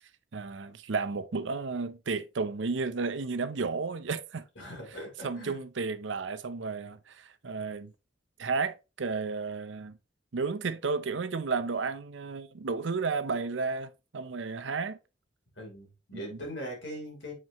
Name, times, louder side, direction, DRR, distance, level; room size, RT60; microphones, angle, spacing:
voice 1, 0.3-4.4 5.2-7.9 8.4-10.0 10.3-15.0 16.1-16.4, right 4 dB, 70° right, 0.6 m, -32 dB
voice 2, 4.5-5.6 15.6-17.3, equal, 65° left, 3.2 m, -41 dB
7.4 x 4.6 x 2.9 m
head